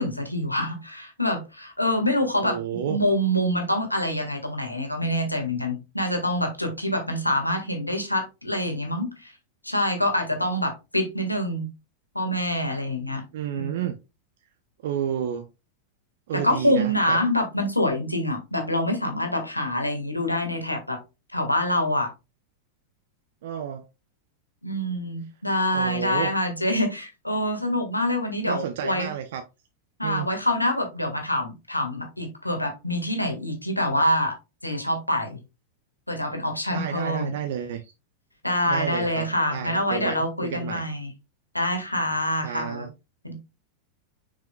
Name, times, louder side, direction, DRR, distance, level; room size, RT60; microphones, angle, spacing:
voice 1, 0.0-9.3 9.6-11.7 12.2-13.2 13.6-13.8 16.3-21.0 21.3-22.1 24.6-29.1 30.0-34.4 34.6-35.4 36.1-37.3 38.4-41.1 41.5-42.9 43.2-43.3, left 1 dB, 85° left, 1.8 m, -26 dB
voice 2, 2.4-3.0 13.3-13.9 14.8-15.5 16.3-17.2 23.4-23.8 25.7-26.3 28.5-29.4 30.0-30.3 36.7-37.9 38.6-40.8 42.4-42.9, right 9 dB, 55° right, 0.7 m, -31 dB
6.8 x 6.1 x 2.3 m
figure-of-eight pair, 90°, 0 cm